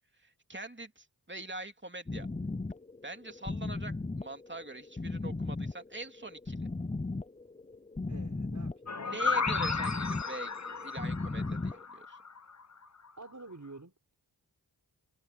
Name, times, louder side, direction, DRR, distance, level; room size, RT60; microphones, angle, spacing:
voice 1, 0.1-2.3 3.0-6.7 9.0-12.2, right 2 dB, 25° right, 2.8 m, -44 dB
sound 1, 2.1-11.8, left 3 dB, 15° left, 0.7 m, -37 dB
voice 2, 8.1-9.5 13.2-14.0, right 3 dB, 40° right, 5.8 m, -49 dB
sound 2, 8.9-12.6, left 5 dB, 40° left, 1.1 m, -34 dB
cardioid pair, 45°, 43 cm